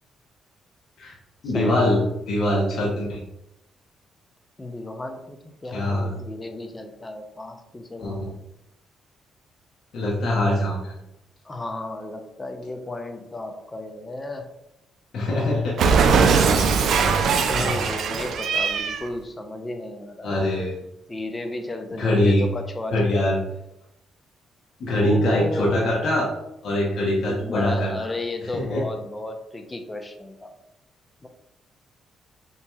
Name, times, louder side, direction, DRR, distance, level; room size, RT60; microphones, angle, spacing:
voice 1, 1.4-3.2 5.7-6.1 8.0-8.3 9.9-10.9 15.1-15.7 16.7-17.1 17.6-17.9 20.2-20.8 22.0-22.4 22.9-23.4 24.8-26.3 26.6-28.1 28.5-28.8, left 1 dB, 65° left, -4 dB, 1.0 m, -23 dB
voice 2, 4.6-8.3 11.4-14.5 17.5-20.3 21.1-23.4 25.0-25.8 27.2-30.5 31.2-31.3, left 2 dB, 20° left, 6 dB, 0.6 m, -34 dB
Cat, 15.8-19.1, right 5 dB, 65° right, 0.4 m, -20 dB
5.7 x 2.9 x 2.3 m, 0.86 s
cardioid pair, 95°, 0 cm